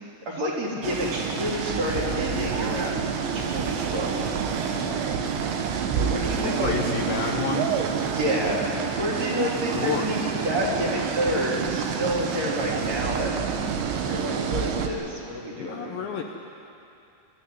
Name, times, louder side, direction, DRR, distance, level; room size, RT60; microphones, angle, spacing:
voice 1, 0.3-5.1 6.0-6.7 8.1-13.3 14.0-16.2, equal, 40° right, -4 dB, 3.8 m, -29 dB
sound 1, 0.8-14.9, right 7 dB, 75° right, 3.4 m, -28 dB
voice 2, 6.4-7.8 9.8-10.1 15.5-16.2, left 7 dB, 90° left, 2 dB, 2.0 m, -30 dB
23.5 x 13.5 x 10.0 m, 2.7 s
omnidirectional pair, 5.6 m